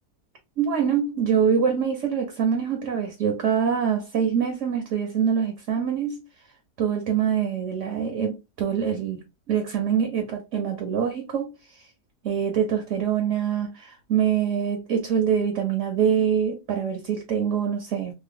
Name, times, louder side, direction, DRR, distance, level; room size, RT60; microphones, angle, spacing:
voice 1, 0.6-6.2 6.8-11.5 12.2-18.1, right 7 dB, 60° right, 0.9 m, -24 dB
3.0 x 2.1 x 3.6 m
omnidirectional pair, 1.7 m